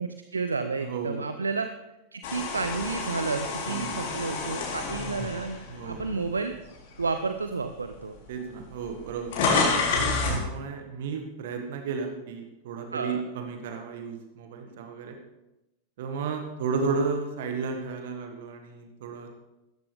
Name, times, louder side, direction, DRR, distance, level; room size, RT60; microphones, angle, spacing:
voice 1, 0.0-1.7 2.1-6.5 7.0-8.2 12.9-13.2, right 4 dB, 75° right, 9 dB, 0.7 m, -31 dB
voice 2, 0.8-1.2 3.7-4.0 5.7-6.0 8.3-9.3 9.8-15.2 16.0-19.3, right 5 dB, 55° right, 4 dB, 1.6 m, -33 dB
sound 1, 2.2-6.5 7.0-7.2 8.1-8.2 8.4-10.5, left 4 dB, 50° left, 3.6 m, -29 dB
17.0 x 14.0 x 3.4 m, 0.97 s
figure-of-eight pair, 90°, 0 cm